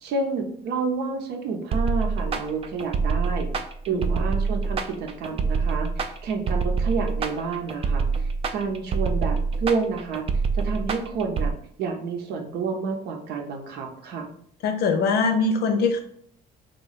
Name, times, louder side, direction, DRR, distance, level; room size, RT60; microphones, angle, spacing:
voice 1, 0.0-3.5 3.9-10.3 10.5-11.5 11.8-14.2, right 4 dB, 75° right, 3 dB, 0.7 m, -29 dB
sound 1, 1.7-11.5, right 4 dB, 35° right, 0.3 m, -25 dB
voice 2, 3.9-4.2 14.6-16.0, left 4 dB, 70° left, 6 dB, 0.6 m, -22 dB
3.1 x 2.3 x 3.9 m, 0.64 s
cardioid pair, 110°, 17 cm